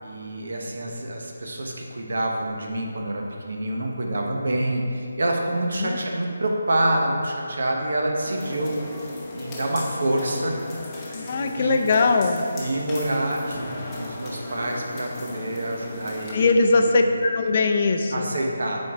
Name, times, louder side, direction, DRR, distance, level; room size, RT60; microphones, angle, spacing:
voice 1, 0.0-8.8 9.3-10.6 11.1-11.8 12.5-16.8 18.1-18.8, right 1 dB, 70° right, 0 dB, 1.0 m, -27 dB
sound 1, 8.2-16.4, left 2 dB, 15° left, 0.8 m, -37 dB
voice 2, 11.1-12.4 16.3-18.3, left 3 dB, 40° left, 5 dB, 0.4 m, -21 dB
7.7 x 4.5 x 3.6 m, 2.3 s
figure-of-eight pair, 165°, 0 cm